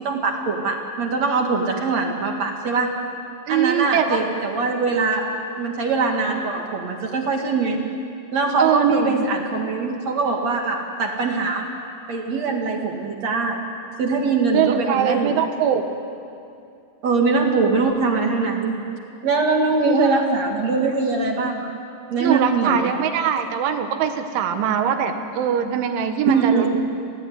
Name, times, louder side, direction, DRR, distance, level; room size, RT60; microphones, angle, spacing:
voice 1, 0.0-2.9 3.5-5.3 5.6-7.8 8.3-11.6 12.1-13.6 14.0-15.4 17.0-18.8 19.2-21.7 22.1-22.9 26.3-26.7, right 4 dB, 50° right, 1 dB, 2.4 m, -22 dB
voice 2, 3.5-4.2 8.6-9.3 14.5-15.8 19.9-20.2 22.2-26.8, right 8 dB, 85° right, 6 dB, 3.9 m, -22 dB
28.0 x 17.5 x 9.6 m, 2.6 s
omnidirectional pair, 5.3 m